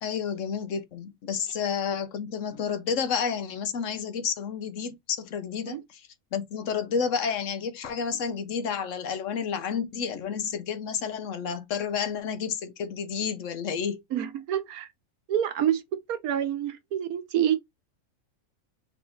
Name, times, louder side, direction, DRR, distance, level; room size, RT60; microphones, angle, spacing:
voice 1, 0.0-6.0 6.3-14.0, left 6 dB, 65° left, 0.9 m, -30 dB
voice 2, 14.1-14.9 15.3-15.8 16.1-17.6, right 10 dB, 75° right, 1.2 m, -27 dB
3.6 x 3.3 x 3.8 m
omnidirectional pair, 1.6 m